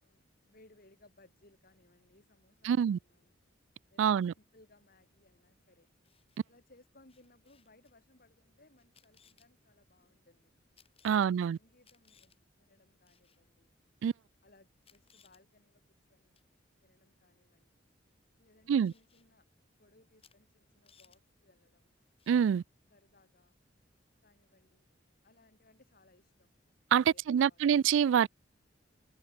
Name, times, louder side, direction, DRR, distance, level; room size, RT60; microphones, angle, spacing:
voice 1, 0.0-3.5 3.9-5.9 6.5-10.6 11.0-13.7 14.4-15.8 16.1-16.4 16.8-17.8 18.4-19.5 19.8-21.9 22.9-23.6 24.2-24.9 25.2-26.5 27.0-27.6, left 2 dB, 55° left, 6.0 m, -65 dB
voice 2, 2.6-3.0 4.0-4.3 11.0-11.6 14.0-14.1 18.7-18.9 22.3-22.6 26.9-28.3, right 8 dB, 90° right, 0.3 m, -26 dB
Camera, 5.9-6.4 7.1-7.9 8.8-9.5 10.8-11.3 11.8-12.4 13.1-13.4 14.3-14.4 14.8-15.4 16.4-16.5 18.9-19.3 20.2-20.4 20.6-21.2 22.2-22.4, left 7 dB, 30° left, 6.3 m, -65 dB
head